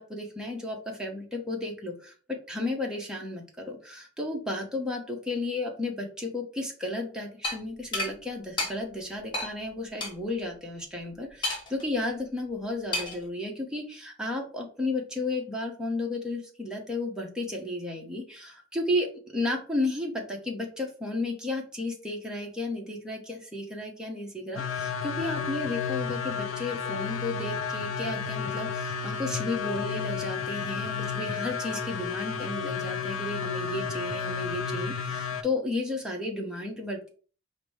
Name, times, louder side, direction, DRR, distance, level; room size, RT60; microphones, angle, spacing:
voice 1, 0.0-37.1, left 2 dB, 5° right, -1 dB, 0.9 m, -33 dB
sound 1, 7.4-7.6 7.9-8.1 8.6-8.7 9.3-9.5 10.0-10.1 11.4-11.8 12.9-13.2, left 2 dB, 25° left, 1.3 m, -30 dB
sound 2, 24.6-35.4, left 6 dB, 85° left, 0.5 m, -32 dB
5.0 x 2.1 x 4.7 m, 0.40 s
head